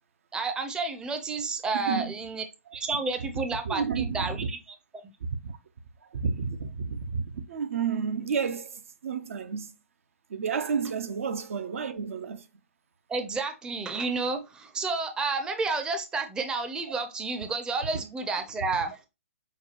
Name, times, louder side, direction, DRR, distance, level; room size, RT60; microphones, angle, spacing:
voice 1, 0.3-2.4 2.7-4.6 13.1-19.1, right 3 dB, 10° right, 0.5 m, -30 dB
voice 2, 1.7-2.1 3.6-4.5 5.4-5.6 6.1-9.7 10.3-12.5, right 6 dB, 65° right, 0.6 m, -31 dB
5.8 x 2.3 x 2.9 m
hypercardioid pair, 125°, 8 cm